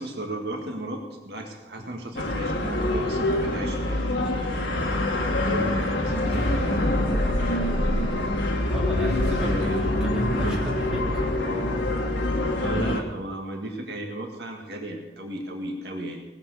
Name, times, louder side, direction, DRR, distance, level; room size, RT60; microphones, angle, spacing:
voice 1, 0.0-4.9 5.5-7.8 8.1-8.3 9.3-10.6 12.6-16.2, right 1 dB, 65° right, 1 dB, 1.9 m, -35 dB
sound 1, 2.2-13.0, left 1 dB, 85° left, 1.8 m, -26 dB
sound 2, 6.3-12.5, left 1 dB, 65° left, 2.8 m, -29 dB
voice 2, 8.6-11.2, equal, 5° right, -5 dB, 2.9 m, -34 dB
19.0 x 7.1 x 6.6 m, 1.1 s
head